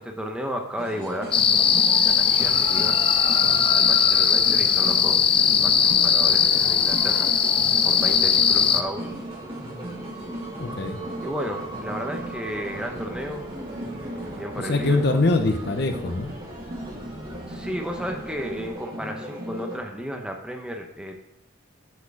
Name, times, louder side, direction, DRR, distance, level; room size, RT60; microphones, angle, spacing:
voice 1, 0.0-7.3 7.8-9.1 11.2-13.4 14.0-15.2 17.5-21.2, equal, 5° right, 2 dB, 0.8 m, -34 dB
sound 1, 0.8-19.8, right 1 dB, 30° right, 2.0 m, -37 dB
sound 2, 1.3-8.8, left 7 dB, 25° left, 0.3 m, -19 dB
sound 3, 1.8-18.7, right 2 dB, 60° right, 3.2 m, -43 dB
voice 2, 10.6-11.0 14.6-16.3, left 2 dB, 55° left, 7 dB, 0.7 m, -23 dB
8.3 x 4.6 x 6.0 m, 0.83 s
head